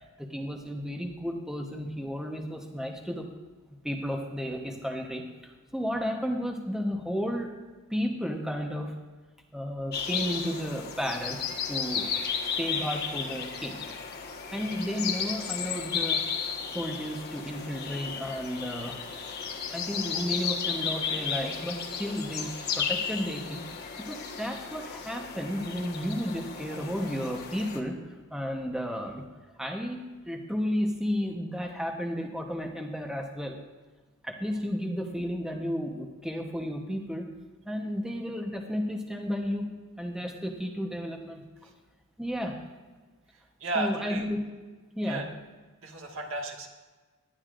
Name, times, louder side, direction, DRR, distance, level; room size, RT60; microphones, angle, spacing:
voice 1, 0.2-3.3 3.8-7.5 7.9-8.9 9.5-12.1 12.6-13.9 14.5-16.2 16.7-19.0 19.7-29.2 29.6-33.6 34.2-37.3 37.7-39.7 40.0-41.4 42.2-42.6 43.7-44.4 45.0-45.3, equal, 5° right, 2 dB, 1.0 m, -33 dB
sound 1, 9.9-27.8, left 6 dB, 50° left, 1.3 m, -34 dB
voice 2, 43.6-44.3 45.0-45.2 45.8-46.7, right 2 dB, 65° right, 1 dB, 1.8 m, -33 dB
19.0 x 11.5 x 2.5 m, 1.3 s
head